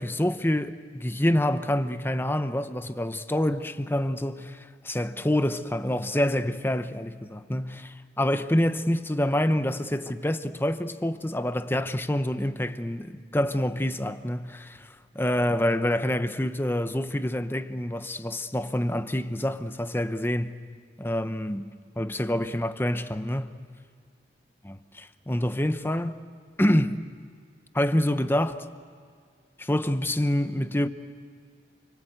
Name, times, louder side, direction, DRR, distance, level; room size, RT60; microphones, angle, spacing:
voice 1, 0.0-20.6 21.0-23.6 24.6-26.2 26.6-27.0 27.7-28.6 29.6-30.9, left 1 dB, 15° left, 0.9 m, -27 dB
29.5 x 23.5 x 8.0 m
head